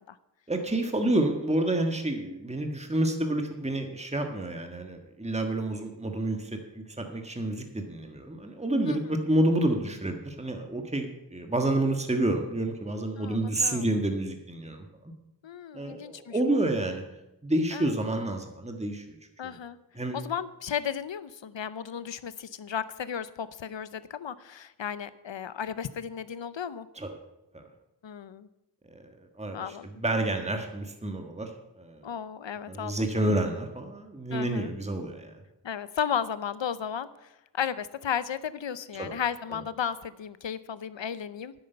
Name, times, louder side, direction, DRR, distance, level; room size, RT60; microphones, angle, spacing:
voice 1, 0.5-14.8 15.7-17.0 17.4-19.0 19.4-19.5 20.0-20.2 27.0-27.1 27.5-27.6 28.9-29.0 29.4-29.6 30.0-31.5 31.8-32.0 32.7-35.3 39.0-39.1, right 1 dB, 15° right, 4 dB, 1.5 m, -29 dB
voice 2, 8.9-9.2 13.2-13.9 15.4-16.6 17.7-18.0 19.4-19.8 20.1-26.9 28.0-28.5 29.5-29.9 32.0-33.3 34.3-34.7 35.6-41.5, left 8 dB, 75° left, 15 dB, 0.7 m, -34 dB
10.0 x 8.7 x 6.8 m, 0.93 s
cardioid pair, 40°, 44 cm